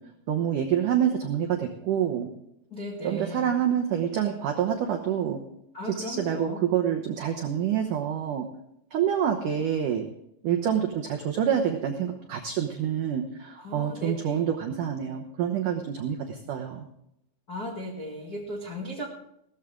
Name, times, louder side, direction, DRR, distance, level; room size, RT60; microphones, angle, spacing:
voice 1, 0.3-2.3 3.0-5.4 6.0-8.5 8.9-10.0 10.4-16.8, right 9 dB, 90° right, 3 dB, 1.8 m, -27 dB
voice 2, 2.7-3.4 5.7-6.6 13.6-14.4 17.5-19.1, left 1 dB, 50° left, -1 dB, 1.1 m, -36 dB
17.0 x 13.5 x 3.8 m, 0.78 s
omnidirectional pair, 5.2 m